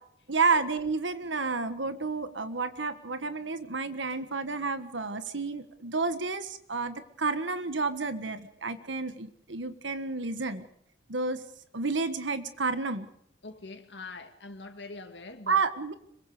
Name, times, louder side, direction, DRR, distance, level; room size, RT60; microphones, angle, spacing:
voice 1, 0.3-10.7 11.1-11.4 11.7-13.1 15.5-15.9, right 4 dB, 80° right, 1.5 m, -30 dB
voice 2, 13.4-15.6, left 3 dB, 70° left, 2.1 m, -43 dB
26.5 x 23.0 x 5.0 m
head